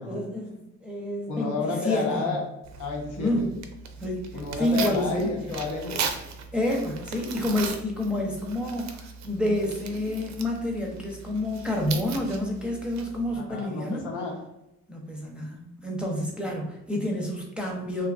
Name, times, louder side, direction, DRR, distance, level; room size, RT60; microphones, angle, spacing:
voice 1, 0.1-2.4 3.2-3.5 4.0-4.3 4.6-5.4 6.5-14.0 14.9-18.1, left 1 dB, 5° right, -2 dB, 0.6 m, -29 dB
voice 2, 1.3-2.4 2.8-3.5 4.3-6.1 13.3-14.3, left 4 dB, 80° left, 0 dB, 0.9 m, -31 dB
Tearing, 2.6-13.4, right 6 dB, 65° right, 0.4 m, -38 dB
2.5 x 2.4 x 2.4 m, 0.88 s
cardioid pair, 90°, 30 cm